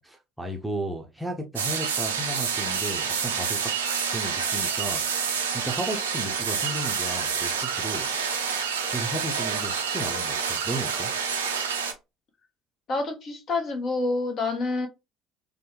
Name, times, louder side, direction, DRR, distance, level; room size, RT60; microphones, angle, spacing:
voice 1, 0.0-3.6 4.1-5.0 5.5-8.1 8.9-11.1, right 1 dB, ahead, 0.7 m, -34 dB
sound 1, 1.6-11.9, right 6 dB, 75° right, 0.5 m, -28 dB
voice 2, 12.9-14.9, left 3 dB, 45° left, 1.0 m, -27 dB
3.4 x 2.2 x 3.0 m
figure-of-eight pair, 60°, 0 cm